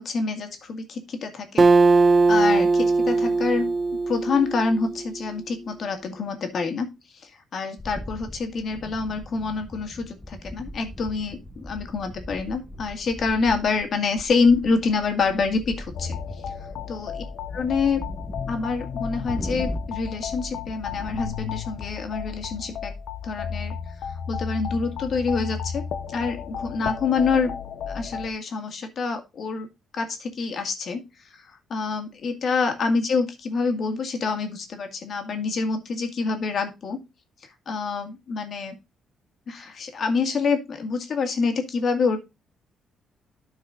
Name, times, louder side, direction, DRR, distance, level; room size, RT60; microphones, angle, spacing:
voice 1, 0.0-1.7 2.3-6.9 7.2-16.2 16.9-17.1 17.5-18.0 18.5-22.9 23.2-23.7 24.3-27.5 27.9-29.7 29.9-31.0 31.3-37.0 37.7-38.8 39.5-42.3, left 4 dB, 55° left, 6 dB, 2.1 m, -26 dB
Acoustic guitar, 1.6-5.2, right 3 dB, 35° right, 0.6 m, -20 dB
sound 1, 7.8-21.9, left 1 dB, 10° left, 1.1 m, -39 dB
sound 2, 15.9-28.3, left 7 dB, 75° left, 0.9 m, -34 dB
12.5 x 4.8 x 3.8 m, 0.25 s
cardioid pair, 90°, 0 cm